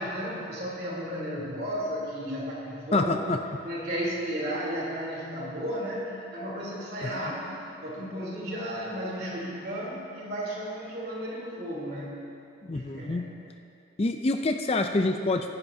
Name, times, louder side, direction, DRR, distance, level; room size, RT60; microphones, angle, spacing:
voice 1, 0.0-3.1 3.6-7.6 7.8-12.2 12.7-13.2, equal, 50° right, -5 dB, 3.3 m, -34 dB
voice 2, 2.9-3.4 7.0-7.1 12.6-13.3 14.0-15.5, left 2 dB, 30° left, 5 dB, 0.4 m, -26 dB
21.5 x 10.5 x 2.7 m, 2.6 s
head